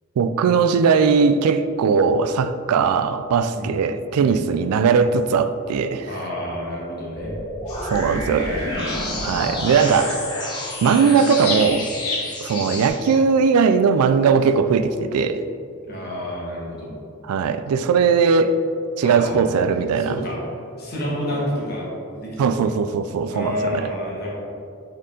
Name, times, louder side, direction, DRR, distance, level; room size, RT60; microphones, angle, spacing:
voice 1, 0.2-6.1 7.9-8.5 9.2-10.2 10.8-11.9 12.4-15.4 17.2-18.6 19.0-20.2 22.4-23.9, right 5 dB, 90° right, 11 dB, 0.3 m, -19 dB
voice 2, 6.0-7.4 8.3-9.4 12.5-12.8 15.8-17.0 19.0-19.4 20.0-20.4 20.8-21.9 22.1-22.6 23.3-24.3, left 1 dB, 45° left, -4 dB, 1.4 m, -29 dB
sound 1, 7.2-13.1, left 1 dB, 20° left, 0.7 m, -30 dB
sound 2, 7.7-12.9, left 3 dB, 80° left, 1.0 m, -32 dB
6.5 x 3.8 x 3.8 m, 2.4 s
head